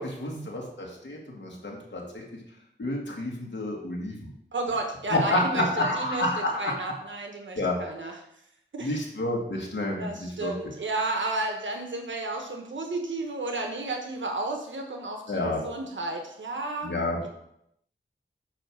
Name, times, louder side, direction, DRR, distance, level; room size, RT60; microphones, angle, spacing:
voice 1, 0.0-2.2 2.8-4.3 5.1-6.8 7.6-7.8 8.8-10.5 15.3-15.6 16.8-17.2, left 1 dB, 75° left, -2 dB, 2.0 m, -29 dB
voice 2, 4.5-6.3 6.5-8.2 8.7-9.0 9.9-16.9 17.2-17.3, right 2 dB, 75° right, 3 dB, 1.0 m, -32 dB
9.1 x 3.2 x 6.1 m, 0.75 s
wide cardioid pair, 70°, 19 cm